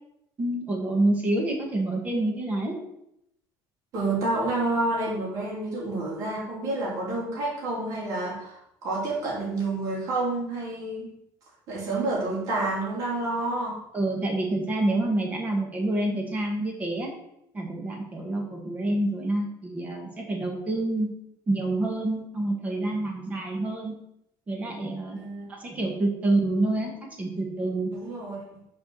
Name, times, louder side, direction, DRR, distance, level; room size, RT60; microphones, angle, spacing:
voice 1, 0.4-2.8 13.9-17.1 17.5-21.1 21.5-24.0 24.5-25.2 25.5-26.9 27.2-27.9, right 2 dB, 15° right, 1 dB, 1.5 m, -27 dB
voice 2, 3.9-11.1 11.7-13.8 25.1-25.5 27.9-28.4, right 2 dB, 45° right, -6 dB, 3.3 m, -29 dB
6.2 x 4.9 x 6.3 m, 0.78 s
cardioid pair, 180°, 8 cm